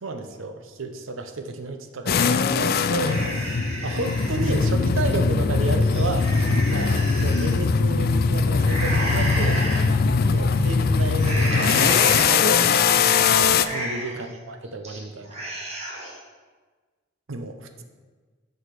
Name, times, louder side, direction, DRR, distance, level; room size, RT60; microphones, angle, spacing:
voice 1, 0.0-3.4 3.8-6.3 6.7-9.6 10.3-13.3 13.7-15.4 17.3-17.8, right 2 dB, 85° right, 7 dB, 0.8 m, -32 dB
sound 1, 2.1-13.7, left 5 dB, 50° left, 0.3 m, -21 dB
sound 2, 3.1-4.7 5.1-5.2 5.7-7.5 8.6-9.9 10.3-10.7 11.2-12.7 13.1-13.2 13.5-14.3 14.6-15.0 15.3-16.2, right 1 dB, 35° right, 1.6 m, -32 dB
6.4 x 5.0 x 5.9 m, 1.4 s
head